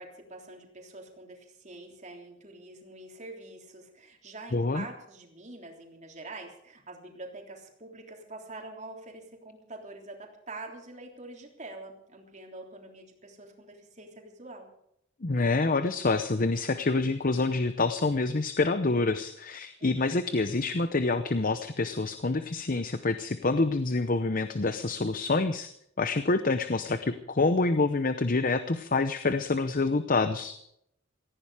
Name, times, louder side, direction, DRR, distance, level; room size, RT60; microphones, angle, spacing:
voice 1, 0.0-14.7 19.8-20.3, right 2 dB, 35° right, 1 dB, 3.5 m, -45 dB
voice 2, 4.5-4.8 15.2-30.6, left 3 dB, 40° left, 11 dB, 0.8 m, -27 dB
18.0 x 15.0 x 4.9 m, 0.74 s
head